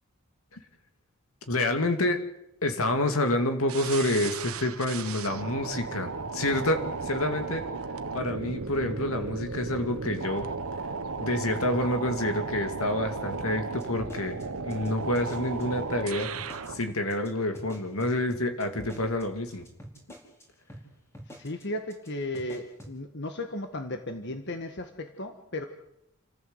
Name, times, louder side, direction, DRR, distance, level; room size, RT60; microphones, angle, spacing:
voice 1, 1.5-2.2 2.6-7.7 8.1-10.5 11.2-16.3 16.7-19.6, left 1 dB, 80° left, 6 dB, 2.5 m, -28 dB
sound 1, 3.7-16.8, right 4 dB, 85° right, 1.2 m, -35 dB
sound 2, 13.5-15.6 15.9-16.0 16.3-16.8 17.1-17.3 17.5-20.4 20.7-20.8 21.1-21.6 21.9-22.1 22.3-22.9, equal, 10° left, 4.9 m, -46 dB
voice 2, 21.3-25.7, left 1 dB, 55° left, 6 dB, 1.6 m, -35 dB
29.5 x 14.5 x 8.1 m, 0.82 s
head